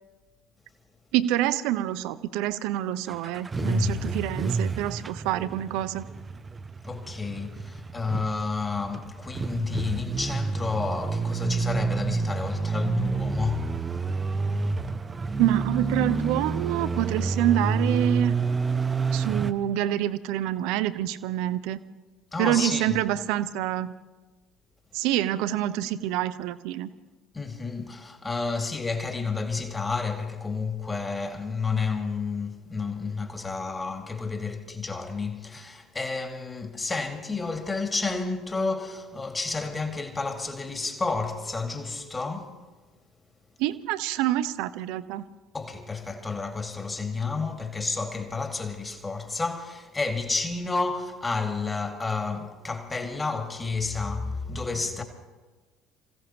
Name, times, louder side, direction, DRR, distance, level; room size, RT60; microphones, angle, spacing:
voice 1, 1.1-6.0 15.4-18.3 19.1-21.8 22.4-23.9 24.9-26.9 43.6-45.2, right 13 dB, 60° right, 0.6 m, -26 dB
sound 1, 3.1-19.5, right 4 dB, 25° right, 0.7 m, -29 dB
voice 2, 3.5-4.1 6.8-14.1 22.3-23.0 27.3-42.6 45.5-55.0, left 4 dB, 20° left, 2.1 m, -31 dB
28.0 x 16.0 x 2.9 m
figure-of-eight pair, 60°, 0 cm